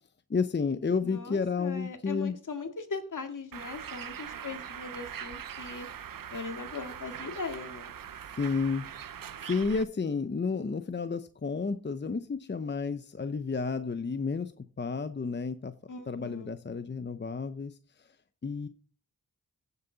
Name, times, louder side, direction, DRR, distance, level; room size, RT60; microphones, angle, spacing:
voice 1, 0.3-2.4 8.3-8.8 9.4-15.7 16.1-18.1 18.4-18.7, left 4 dB, 30° left, 11 dB, 0.7 m, -31 dB
voice 2, 1.0-5.9 6.3-7.9 15.9-16.5, left 4 dB, 65° left, 6 dB, 2.0 m, -39 dB
Bird, 3.5-9.8, right 9 dB, 80° right, 0.7 m, -42 dB
16.5 x 6.9 x 4.0 m, 0.38 s
cardioid pair, 60°, 34 cm